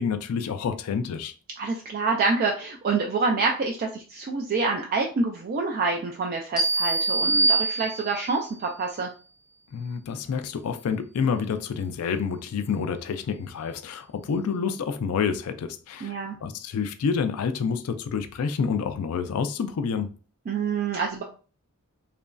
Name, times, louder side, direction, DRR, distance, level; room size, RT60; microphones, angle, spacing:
voice 1, 0.0-1.3 9.7-20.1, left 6 dB, 70° left, 0.3 m, -28 dB
voice 2, 1.6-9.1 16.0-16.4 20.5-21.2, right 4 dB, 40° right, 0.3 m, -27 dB
sound 1, 6.6-8.4, right 3 dB, 5° right, 0.6 m, -24 dB
2.9 x 2.5 x 2.2 m
head